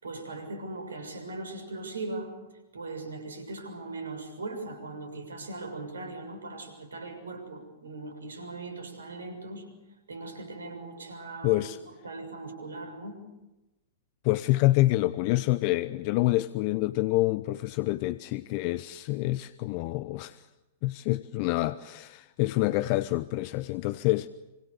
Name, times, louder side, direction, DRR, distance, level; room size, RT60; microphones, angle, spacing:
voice 1, 0.0-2.4 2.7-9.7 10.1-13.2, right 2 dB, 80° right, 6.8 m, -39 dB
voice 2, 11.4-11.8 14.2-20.4 20.8-24.3, left 18 dB, 45° left, 0.8 m, -27 dB
26.5 x 26.0 x 6.9 m
figure-of-eight pair, 105°, 0 cm